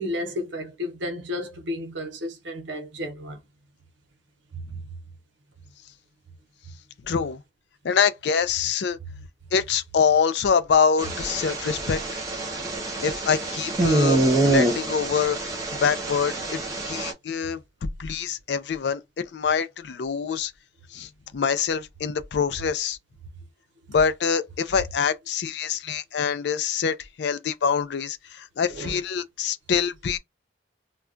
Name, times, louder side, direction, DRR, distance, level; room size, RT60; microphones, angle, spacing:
voice 1, 0.0-3.4 4.5-4.6 28.7-29.0, left 1 dB, 80° right, 0.8 m, -32 dB
voice 2, 7.1-7.4 7.8-9.0 9.5-12.0 13.0-14.2 14.4-16.4 16.9-17.6 18.0-19.0 19.3-20.5 20.9-23.0 23.9-30.2, left 6 dB, 65° left, 0.4 m, -25 dB
sound 1, 11.0-17.1, right 2 dB, 20° right, 0.7 m, -25 dB
2.3 x 2.2 x 3.7 m
head